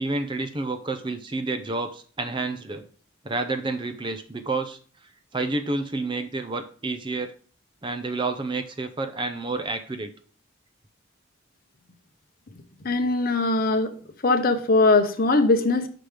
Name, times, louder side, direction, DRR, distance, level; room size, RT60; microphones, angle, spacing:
voice 1, 0.0-2.9 3.2-4.8 5.3-7.3 7.8-10.1, right 3 dB, 25° right, 9 dB, 0.5 m, -29 dB
voice 2, 12.8-13.9 14.2-15.9, left 2 dB, 45° left, 8 dB, 0.8 m, -20 dB
6.0 x 5.0 x 4.9 m, 0.43 s
head